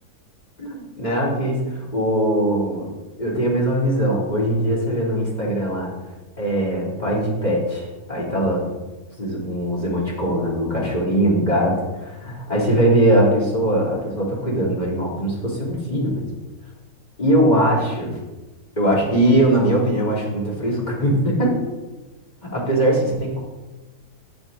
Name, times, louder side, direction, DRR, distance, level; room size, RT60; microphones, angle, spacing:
voice 1, 0.6-2.9 3.2-5.9 6.4-8.6 9.2-16.3 17.2-18.2 18.8-21.6 22.4-23.4, right 1 dB, 25° left, -4 dB, 2.8 m, -21 dB
9.9 x 6.1 x 5.1 m, 1.1 s
omnidirectional pair, 1.8 m